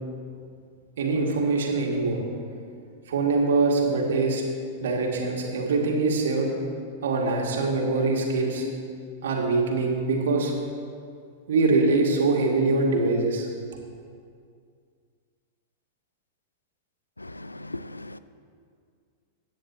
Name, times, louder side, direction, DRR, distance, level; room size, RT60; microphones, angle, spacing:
voice 1, 1.0-2.2 3.1-4.4 4.8-6.5 7.0-8.6 9.2-10.5 11.5-13.5, right 3 dB, 60° right, 0 dB, 2.3 m, -23 dB
voice 2, 17.2-18.2, left 2 dB, 85° left, 14 dB, 0.4 m, -38 dB
24.0 x 9.5 x 3.0 m, 2.2 s
figure-of-eight pair, 95°, 0 cm